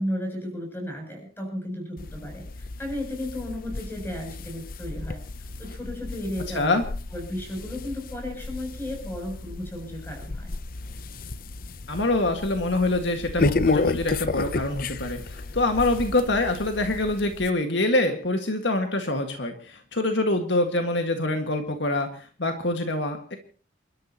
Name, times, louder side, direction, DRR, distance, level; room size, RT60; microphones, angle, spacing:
voice 1, 0.0-6.8 7.1-10.6, left 1 dB, 10° left, 2 dB, 7.9 m, -34 dB
sound 1, 2.0-17.5, left 3 dB, 45° left, 0.7 m, -32 dB
voice 2, 11.9-23.4, left 2 dB, 70° left, 5 dB, 1.9 m, -25 dB
29.0 x 13.0 x 3.0 m, 0.39 s
head